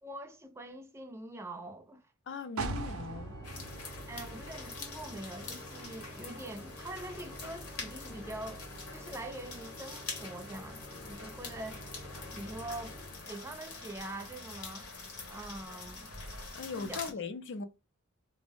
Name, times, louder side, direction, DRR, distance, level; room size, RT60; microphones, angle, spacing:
voice 1, 0.0-2.0 4.1-8.7 8.9-11.9 12.3-13.0 13.3-14.9 15.3-16.1 16.7-17.1, right 1 dB, 10° right, 0.4 m, -44 dB
voice 2, 2.3-3.3 16.5-17.7, left 4 dB, 55° left, 0.4 m, -39 dB
sound 1, 2.6-6.3 6.7-6.8, right 3 dB, 70° right, 0.5 m, -41 dB
Organ, 3.0-13.8, equal, 15° left, 0.7 m, -49 dB
sound 2, 3.4-17.1, left 3 dB, 85° left, 0.9 m, -45 dB
2.5 x 2.0 x 3.4 m
head